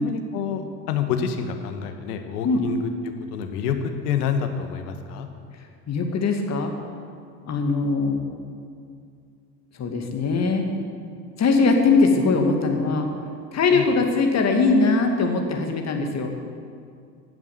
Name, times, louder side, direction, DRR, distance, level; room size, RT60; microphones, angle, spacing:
voice 1, 0.0-2.9 3.3-5.3 13.7-13.9, left 7 dB, 65° left, 7 dB, 1.4 m, -27 dB
voice 2, 5.9-6.7 7.5-8.2 9.8-10.7 11.4-13.1 13.5-16.3, left 4 dB, 30° left, 3 dB, 2.1 m, -21 dB
14.5 x 7.3 x 8.0 m, 2.3 s
figure-of-eight pair, 75°, 49 cm